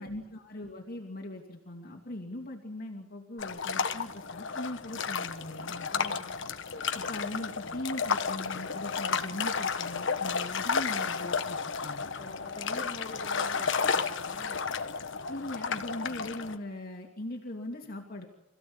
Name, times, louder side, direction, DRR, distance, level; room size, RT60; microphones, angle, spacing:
voice 1, 0.0-5.9 6.9-12.1 15.3-18.3, left 1 dB, 50° left, 0 dB, 2.7 m, -40 dB
sound 1, 3.4-16.6, left 5 dB, 65° left, 1.4 m, -32 dB
voice 2, 5.7-6.5 12.2-14.6, left 1 dB, 30° left, 0 dB, 3.5 m, -46 dB
26.5 x 16.0 x 8.8 m, 0.92 s
head